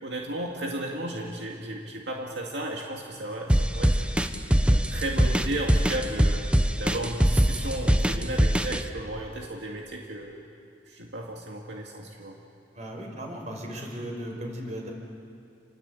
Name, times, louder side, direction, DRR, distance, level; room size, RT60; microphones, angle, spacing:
voice 1, 0.0-4.0 4.5-6.4 6.8-10.4 10.9-12.4, right 1 dB, 80° right, -1 dB, 2.2 m, -34 dB
sound 1, 3.5-8.8, equal, 5° right, 0.9 m, -22 dB
voice 2, 12.7-14.9, equal, 40° right, 1 dB, 5.4 m, -36 dB
29.0 x 21.5 x 8.6 m, 2.5 s
head